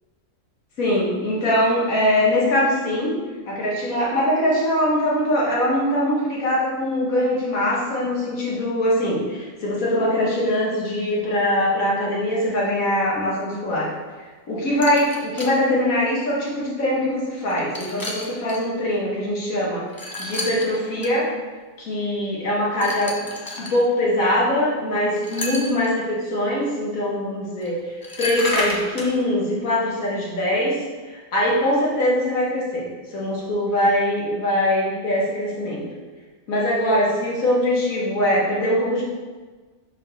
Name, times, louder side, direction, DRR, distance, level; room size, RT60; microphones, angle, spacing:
voice 1, 0.8-3.1 3.5-13.9 14.5-19.8 20.2-21.3 21.8-23.3 23.6-35.8 36.5-39.0, left 1 dB, 80° left, -5 dB, 1.9 m, -22 dB
sound 1, 14.8-15.6 16.4-16.5 17.4-18.6 19.9-21.1 22.8-23.8 25.2-25.9 27.6-27.7 28.0-29.1, left 1 dB, 25° left, 0.5 m, -31 dB
4.9 x 3.8 x 5.4 m, 1.4 s
omnidirectional pair, 1.4 m